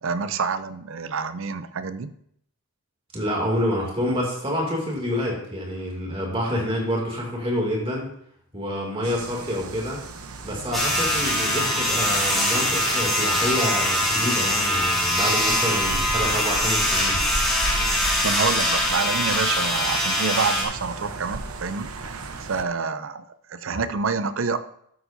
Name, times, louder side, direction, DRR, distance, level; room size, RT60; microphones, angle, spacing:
voice 1, 0.0-2.1 18.2-21.9 22.4-23.2 23.5-24.6, right 5 dB, 60° right, 12 dB, 0.5 m, -27 dB
voice 2, 3.1-8.1 8.5-10.0 10.4-17.2, equal, 25° right, -2 dB, 2.5 m, -27 dB
sound 1, 9.0-22.6, right 3 dB, 80° right, 0.8 m, -35 dB
sound 2, 10.7-20.6, left 1 dB, ahead, 2.2 m, -23 dB
12.5 x 8.0 x 2.7 m, 0.69 s
head